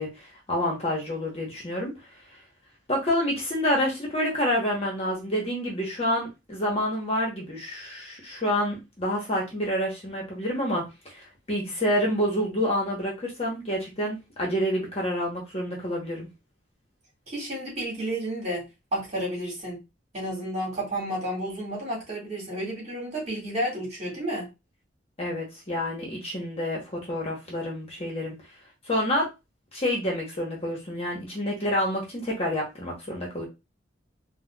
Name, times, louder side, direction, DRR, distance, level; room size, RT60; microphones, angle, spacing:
voice 1, 0.0-1.9 2.9-16.3 25.2-28.4 28.8-29.3 29.7-33.4, equal, 30° left, 0.9 m, -28 dB
voice 2, 17.3-19.8 20.1-24.5, right 1 dB, 35° right, 1.9 m, -31 dB
4.1 x 2.2 x 2.2 m
head